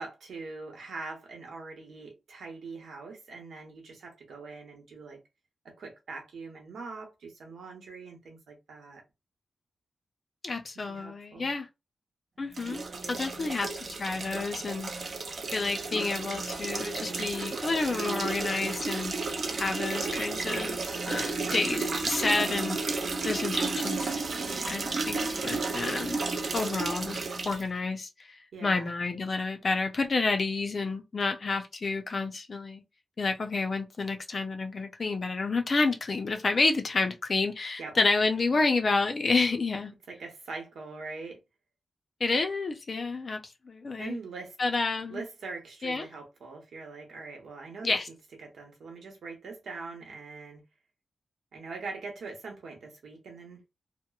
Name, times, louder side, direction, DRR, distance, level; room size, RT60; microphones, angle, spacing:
voice 1, 0.0-5.2 5.6-9.0 10.9-11.5 28.5-28.9 37.8-38.0 40.1-41.4 44.0-44.6 45.1-48.0 48.4-50.6 51.5-53.6, right 4 dB, 90° right, 0.9 m, -42 dB
voice 2, 10.4-11.7 12.4-12.8 13.1-13.7 14.0-15.1 15.5-19.1 19.6-26.2 26.5-32.8 33.2-39.9 42.2-44.2 44.6-45.2 45.8-46.1 47.8-48.1, left 3 dB, 35° left, 0.4 m, -30 dB
sound 1, 12.5-27.6, right 3 dB, 45° right, 0.4 m, -32 dB
2.9 x 2.0 x 2.3 m
wide cardioid pair, 165°, 0 cm